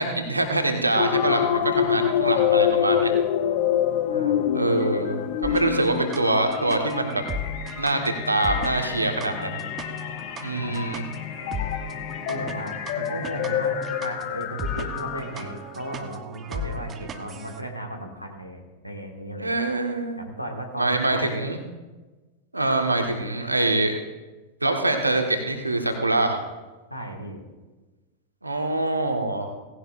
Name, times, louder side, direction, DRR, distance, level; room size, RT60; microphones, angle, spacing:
voice 1, 0.0-3.1 4.5-7.2 7.8-9.6 10.4-11.0 19.4-20.2 20.8-21.6 22.5-23.9 24.6-26.4 28.4-29.5, right 2 dB, 85° right, 4 dB, 1.5 m, -24 dB
sound 1, 1.0-15.5, left 10 dB, 50° left, 0.8 m, -27 dB
voice 2, 4.1-4.5 10.5-10.9 12.3-19.5 20.2-21.4 26.9-27.4, right 1 dB, 90° left, 3 dB, 1.8 m, -35 dB
sound 2, 5.4-17.6, equal, 25° right, 1.0 m, -37 dB
17.5 x 16.0 x 2.6 m, 1.2 s
figure-of-eight pair, 90°, 0 cm